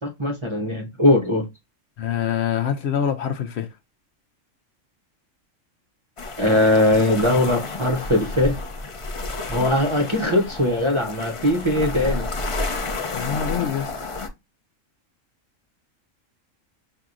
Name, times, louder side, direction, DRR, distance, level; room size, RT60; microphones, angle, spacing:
voice 1, 0.0-1.4 6.4-8.6 9.5-12.3, left 1 dB, 30° right, 0.6 m, -20 dB
voice 2, 2.0-3.7 13.1-13.9, left 8 dB, 65° left, 0.8 m, -25 dB
sound 1, 6.2-14.3, left 3 dB, 45° left, 0.4 m, -30 dB
5.8 x 2.7 x 2.5 m
omnidirectional pair, 1.3 m